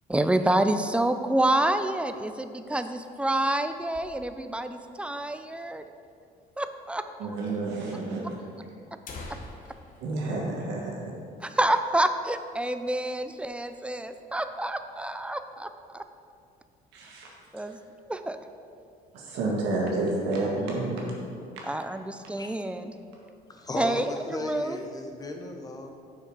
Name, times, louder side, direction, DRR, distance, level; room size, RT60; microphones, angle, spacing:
voice 1, 0.1-5.9 6.6-7.3 11.4-16.0 17.5-18.4 21.6-22.9 23.8-24.8, right 1 dB, 5° right, 9 dB, 0.4 m, -28 dB
sound 1, 3.6-4.7 5.0-5.1 5.3-5.4 6.1-6.2 7.1-7.2 7.5-7.6 8.4-8.5 8.8-11.4 11.7-11.9 12.3-12.5 13.0-13.5, left 2 dB, 50° left, 1.2 m, -46 dB
voice 2, 7.2-8.3 10.0-11.1 16.9-17.3 19.1-21.1 21.5-21.6, right 2 dB, 90° right, -2 dB, 1.7 m, -30 dB
voice 3, 23.5-25.9, left 2 dB, 20° left, 3 dB, 0.9 m, -35 dB
6.9 x 5.8 x 4.9 m, 2.4 s
cardioid pair, 110°, 17 cm